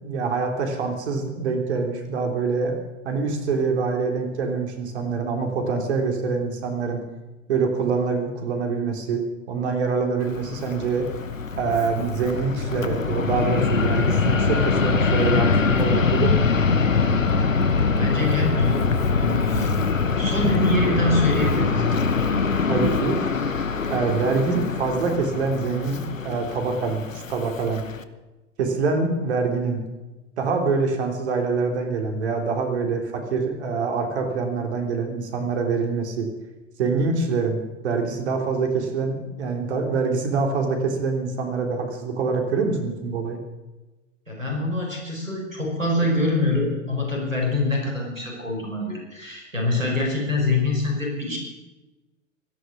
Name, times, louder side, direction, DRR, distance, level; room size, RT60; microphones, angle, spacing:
voice 1, 0.0-2.8 3.1-7.0 7.5-9.2 9.5-11.1 11.6-16.4 22.7-23.2 23.9-27.8 28.6-29.8 30.4-36.3 36.8-43.4, right 4 dB, 60° right, 3 dB, 3.5 m, -25 dB
Fixed-wing aircraft airplane, 10.2-28.0, left 5 dB, 85° left, 1.1 m, -23 dB
voice 2, 17.8-19.7 20.2-21.9 44.3-51.4, left 2 dB, 90° right, 0 dB, 5.3 m, -24 dB
17.0 x 13.0 x 6.2 m, 1.1 s
figure-of-eight pair, 95°, 38 cm